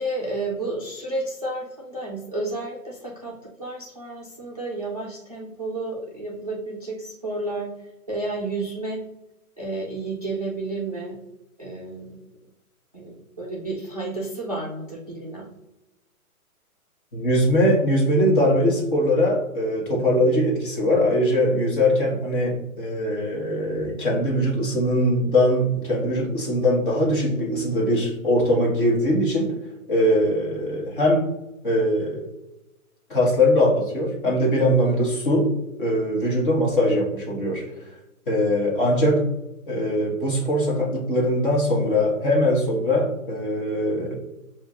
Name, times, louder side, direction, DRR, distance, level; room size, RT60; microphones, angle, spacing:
voice 1, 0.0-9.0 9.6-11.2 11.6-12.2 12.9-15.5 34.8-35.1, right 2 dB, 30° right, -4 dB, 0.4 m, -31 dB
voice 2, 17.1-29.5 29.9-31.3 31.6-32.3 33.1-35.5 35.8-37.8 38.3-39.2 39.7-44.1, equal, 35° left, -3 dB, 1.3 m, -21 dB
7.1 x 2.5 x 2.4 m, 0.94 s
hypercardioid pair, 165°, 44 cm